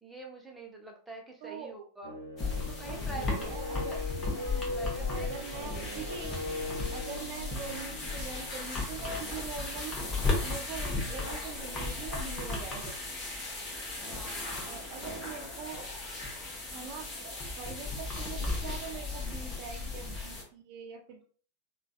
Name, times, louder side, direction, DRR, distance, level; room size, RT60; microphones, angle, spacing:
voice 1, 0.0-2.2 2.7-3.8 4.4-5.6 13.9-15.2 17.8-17.9, right 2 dB, 5° right, -1 dB, 0.8 m, -46 dB
voice 2, 1.4-1.7 2.8-4.0 5.1-6.4 6.9-10.0 10.4-13.0 14.6-15.9 16.7-21.3, right 5 dB, 45° right, 3 dB, 0.4 m, -43 dB
sound 1, 2.0-9.0, left 1 dB, 85° left, 0.9 m, -40 dB
sound 2, 2.4-20.4, left 3 dB, 25° left, 1.1 m, -36 dB
3.8 x 2.4 x 2.3 m, 0.43 s
figure-of-eight pair, 90°, 0 cm